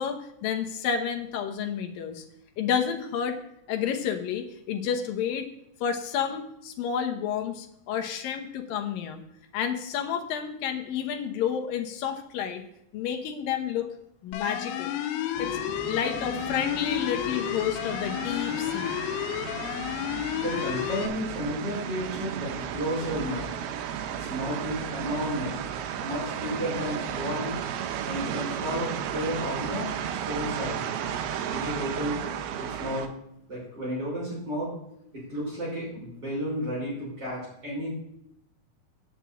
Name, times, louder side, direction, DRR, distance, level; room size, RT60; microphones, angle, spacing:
voice 1, 0.0-2.2 2.6-3.4 3.7-5.5 5.8-9.2 9.5-12.6 12.9-13.9 14.2-15.0 15.4-15.6 15.9-19.0, left 8 dB, 70° left, 5 dB, 2.4 m, -30 dB
sound 1, 14.3-21.1, left 11 dB, 90° left, 2.8 m, -31 dB
sound 2, 15.3-33.1, right 9 dB, 80° right, 2.6 m, -34 dB
voice 2, 20.4-23.5 24.2-25.6 26.0-27.5 28.0-30.8 31.5-32.2 32.6-33.1 33.5-34.7 35.1-37.9, equal, 25° right, -5 dB, 5.3 m, -32 dB
8.1 x 6.3 x 8.1 m, 0.77 s
omnidirectional pair, 4.7 m